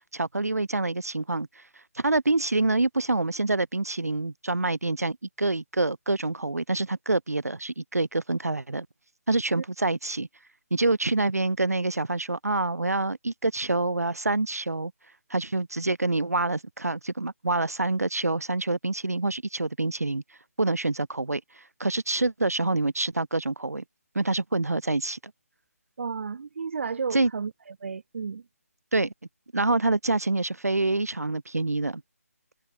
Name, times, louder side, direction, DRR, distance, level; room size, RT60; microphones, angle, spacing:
voice 1, 0.1-1.6 1.9-8.9 9.3-10.3 10.7-14.9 15.3-20.2 20.6-21.4 21.8-23.8 24.1-25.2 27.1-27.3 28.9-29.1 29.5-32.0, right 2 dB, 85° right, 3.4 m, -26 dB
voice 2, 26.0-28.4, right 5 dB, 55° right, 2.1 m, -33 dB
figure-of-eight pair, 155°, 8 cm